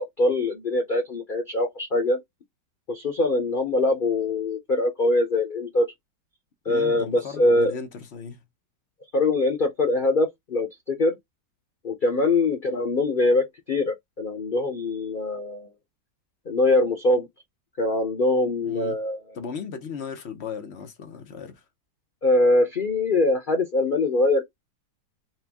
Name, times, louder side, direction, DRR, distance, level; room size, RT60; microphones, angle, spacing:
voice 1, 0.0-2.2 2.9-5.9 6.7-7.7 9.1-11.2 11.8-15.7 16.5-17.3 17.8-19.2 22.2-24.4, left 2 dB, 90° left, 0.4 m, -23 dB
voice 2, 6.6-8.4 18.6-19.0 19.3-21.6, left 5 dB, 50° left, 0.8 m, -36 dB
4.3 x 2.3 x 3.4 m
omnidirectional pair, 1.9 m